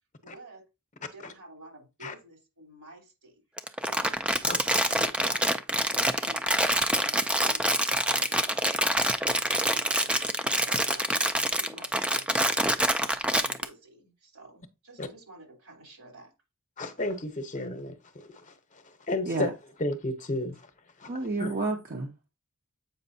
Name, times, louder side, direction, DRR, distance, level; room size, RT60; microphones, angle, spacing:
voice 1, 0.2-0.7 1.1-3.4 3.8-4.2 5.1-16.3, right 2 dB, 70° right, 3.4 m, -51 dB
Crumpling crinkling, 3.6-13.6, right 1 dB, 5° right, 0.4 m, -26 dB
voice 2, 16.8-19.5 19.8-20.7 21.0-21.1 21.4-21.6, left 1 dB, 35° left, 0.9 m, -33 dB
voice 3, 21.1-22.3, right 2 dB, 40° right, 0.9 m, -30 dB
8.0 x 5.3 x 2.7 m
head